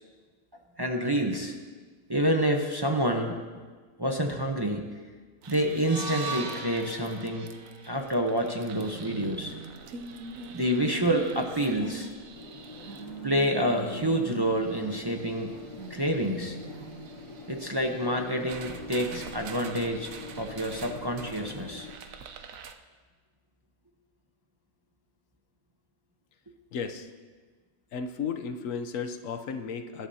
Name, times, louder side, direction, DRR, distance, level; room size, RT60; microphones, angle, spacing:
voice 1, 0.8-1.6 2.1-3.4 4.0-4.9 5.5-7.5 7.8-9.5 10.5-12.1 13.2-15.5 15.9-16.6 17.5-21.9, right 1 dB, 20° right, 2 dB, 0.8 m, -28 dB
sound 1, 5.4-22.7, right 5 dB, 80° right, 1.2 m, -43 dB
sound 2, 5.7-9.9, right 3 dB, 50° right, 3.8 m, -40 dB
sound 3, 12.4-22.0, left 4 dB, 35° left, 0.6 m, -46 dB
voice 2, 26.7-27.1 27.9-30.1, left 6 dB, 75° left, 8 dB, 1.1 m, -34 dB
20.0 x 12.0 x 2.8 m, 1.5 s
omnidirectional pair, 1.4 m